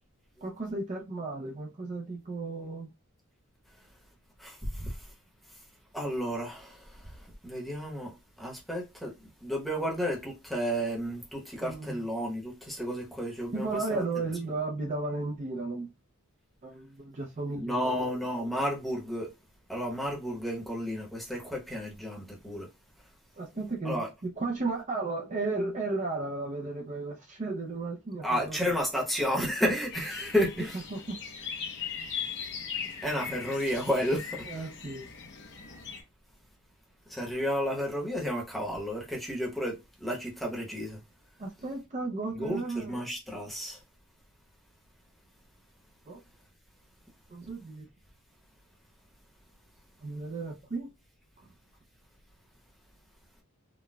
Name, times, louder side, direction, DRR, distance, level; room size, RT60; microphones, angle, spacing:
voice 1, 0.4-2.9 11.6-12.0 13.5-15.9 16.6-18.1 23.4-28.6 30.9-31.2 34.4-35.1 41.4-42.9 46.1-46.2 47.3-47.9 50.0-50.9, right 3 dB, 35° right, 0.5 m, -34 dB
voice 2, 4.4-5.1 5.9-8.1 8.4-9.1 9.4-14.0 17.5-19.3 19.7-22.7 23.8-24.1 28.2-30.8 33.0-34.6 37.1-41.0 42.3-43.8 47.4-47.5, equal, ahead, 0.9 m, -32 dB
sound 1, 29.9-36.0, left 7 dB, 50° left, 0.8 m, -39 dB
4.0 x 2.1 x 2.2 m
head